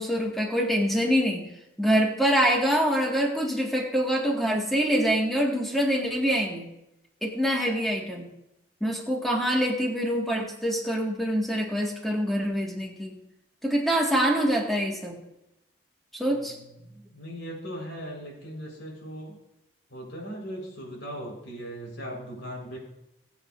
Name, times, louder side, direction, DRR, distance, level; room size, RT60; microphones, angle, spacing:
voice 1, 0.0-1.5 1.8-6.7 7.2-8.3 8.8-13.2 13.6-15.2 16.1-16.5, equal, ahead, -2 dB, 2.0 m, -25 dB
voice 2, 16.3-19.3 19.9-22.8, equal, 90° left, -1 dB, 4.7 m, -39 dB
20.0 x 8.3 x 2.7 m, 0.88 s
head